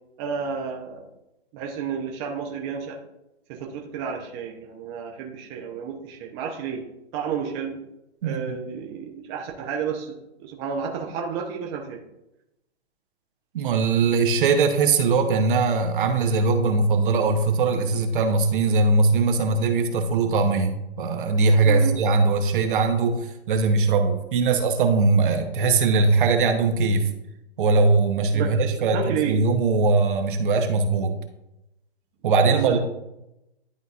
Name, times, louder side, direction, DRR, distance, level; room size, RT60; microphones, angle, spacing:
voice 1, 0.2-1.0 1.5-3.0 3.5-6.8 7.1-7.8 8.2-12.0 21.6-22.0 28.3-28.5 28.9-29.4 32.5-32.8, right 7 dB, 25° right, 0 dB, 0.8 m, -31 dB
voice 2, 8.2-8.6 13.5-23.2 23.5-27.1 27.6-29.0 29.2-31.1 32.2-32.8, right 4 dB, 50° right, 5 dB, 1.0 m, -21 dB
11.5 x 3.9 x 2.4 m, 0.90 s
hypercardioid pair, 145°, 33 cm